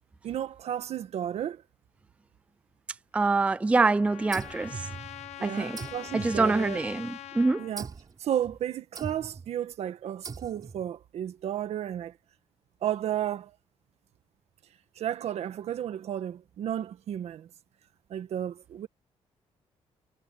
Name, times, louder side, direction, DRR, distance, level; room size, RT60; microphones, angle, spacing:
voice 1, 0.2-1.6 5.4-6.8 7.6-7.9 8.2-12.1 12.8-13.5 14.9-17.5 18.1-18.9, right 10 dB, 70° right, 1.5 m, -33 dB
voice 2, 3.1-4.9 5.4-5.8 6.1-7.7, right 3 dB, 10° right, 0.4 m, -25 dB
Trumpet, 3.2-7.7, left 13 dB, 75° left, 1.0 m, -44 dB
sound 1, 4.3-5.4 5.8-7.1 7.8-8.2 8.9-9.5 10.2-10.9, right 5 dB, 35° right, 3.9 m, -41 dB
cardioid pair, 115°, 11 cm